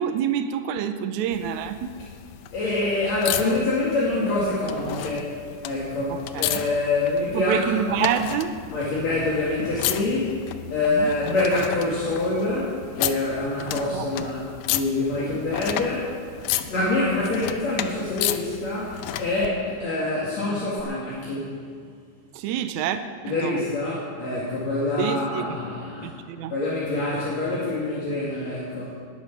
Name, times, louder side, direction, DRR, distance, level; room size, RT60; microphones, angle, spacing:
voice 1, 0.0-1.9 6.1-6.5 7.3-8.6 11.0-11.1 13.9-14.3 15.2-15.3 22.3-23.6 25.0-25.6 26.0-26.5, right 8 dB, 75° right, 9 dB, 2.0 m, -27 dB
sound 1, 1.3-19.5 20.8-20.9, left 12 dB, 80° left, 1.8 m, -33 dB
voice 2, 2.5-8.1 8.7-10.4 10.7-14.4 14.7-16.2 16.6-21.6 23.2-26.1 26.5-29.0, left 2 dB, 60° left, -7 dB, 3.4 m, -26 dB
19.5 x 8.8 x 6.0 m, 2.2 s
omnidirectional pair, 3.6 m